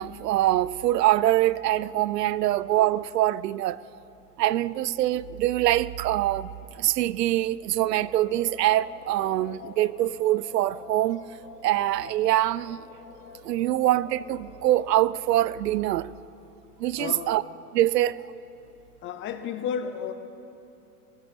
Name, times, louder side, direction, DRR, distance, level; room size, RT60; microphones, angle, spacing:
voice 1, 0.0-3.8 4.4-6.5 6.8-11.2 11.6-12.8 13.4-16.1 16.8-17.4 17.7-18.2, right 14 dB, 85° right, 0.5 m, -24 dB
sound 1, 7.8-15.2, left 7 dB, 65° left, 1.3 m, -47 dB
voice 2, 16.9-17.3 19.0-20.1, left 7 dB, 25° left, 0.7 m, -32 dB
18.0 x 7.5 x 6.9 m
hypercardioid pair, 120°, 47 cm